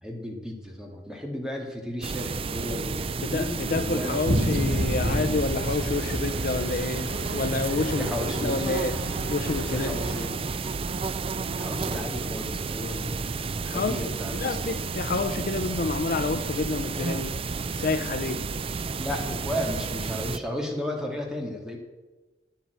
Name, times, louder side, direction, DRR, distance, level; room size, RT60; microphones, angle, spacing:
voice 1, 0.0-4.4 8.0-8.8 9.6-10.3 11.5-14.8 19.0-21.8, left 1 dB, 5° right, 1 dB, 2.1 m, -34 dB
sound 1, 2.0-20.4, right 4 dB, 35° right, 0.4 m, -31 dB
voice 2, 3.2-9.0 9.3-10.0 13.7-17.4 17.8-18.5, left 3 dB, 55° left, 8 dB, 0.6 m, -29 dB
sound 2, 4.2-10.3, equal, 85° right, 1.8 m, -30 dB
9.5 x 9.2 x 7.9 m, 1.2 s
head